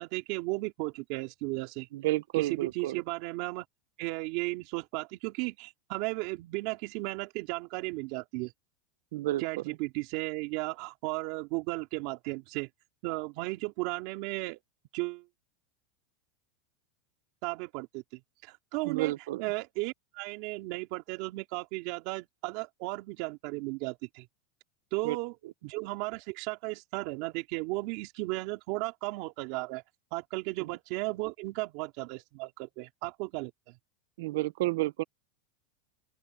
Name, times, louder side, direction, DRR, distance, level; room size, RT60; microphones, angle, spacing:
voice 1, 0.0-1.9 2.3-3.6 4.0-8.5 9.4-12.7 13.0-14.6 14.9-15.2 17.4-19.1 19.4-24.3 24.9-25.4 25.6-29.8 30.1-33.8, right 23 dB, 55° right, 2.8 m, -35 dB
voice 2, 1.9-3.0 9.1-9.7 18.8-19.4 25.0-25.2 25.4-25.5 30.6-30.8 34.2-35.0, right 17 dB, 75° right, 1.0 m, -31 dB
open air
supercardioid pair, 145°, 0 cm